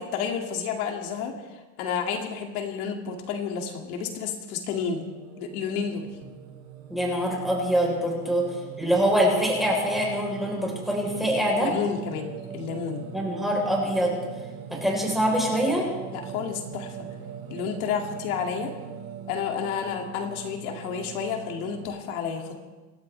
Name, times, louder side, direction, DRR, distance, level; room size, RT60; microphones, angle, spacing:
voice 1, 0.0-1.3 1.8-5.1 5.4-6.1 11.6-13.1 16.1-17.1 17.5-18.7 19.3-22.6, left 6 dB, 90° left, 2 dB, 2.4 m, -30 dB
Singing, 4.7-21.8, right 7 dB, 50° right, 3.6 m, -41 dB
voice 2, 6.9-11.7 13.1-14.2 14.7-15.8, equal, ahead, -2 dB, 3.9 m, -24 dB
26.0 x 12.5 x 3.3 m, 1.2 s
cardioid pair, 160°, 43 cm